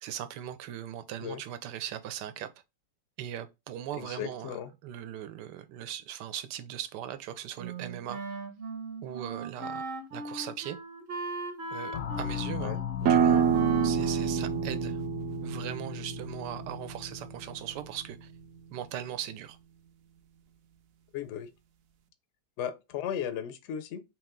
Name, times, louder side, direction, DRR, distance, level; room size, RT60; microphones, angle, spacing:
voice 1, 0.0-2.5 3.2-4.6 4.8-8.2 9.0-10.8 11.7-13.5 13.8-15.0 15.4-18.3 18.7-19.6, right 10 dB, 85° right, 1.2 m, -39 dB
voice 2, 3.9-4.7 12.6-12.8 21.1-21.5 22.6-24.0, left 9 dB, 70° left, 0.7 m, -36 dB
Wind instrument woodwind instrument, 7.6-15.1, right 4 dB, 45° right, 1.3 m, -38 dB
sound 1, 11.9-18.3, left 9 dB, 85° left, 1.2 m, -38 dB
sound 2, 13.0-18.4, right 8 dB, 70° right, 0.8 m, -29 dB
3.3 x 3.0 x 3.6 m
omnidirectional pair, 1.8 m